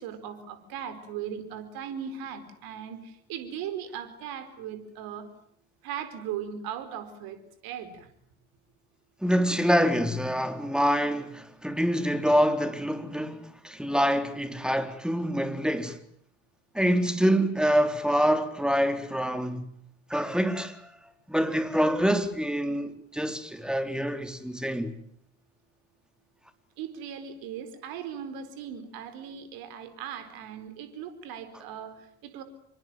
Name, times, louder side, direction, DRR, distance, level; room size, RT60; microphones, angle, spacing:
voice 1, 0.0-5.3 5.8-8.1 26.8-32.4, right 8 dB, 65° right, 4.7 m, -38 dB
voice 2, 9.2-16.0 16.7-19.7 20.1-20.9 21.3-25.0, equal, ahead, 3.8 m, -26 dB
26.5 x 24.0 x 9.1 m
hypercardioid pair, 60°, 39 cm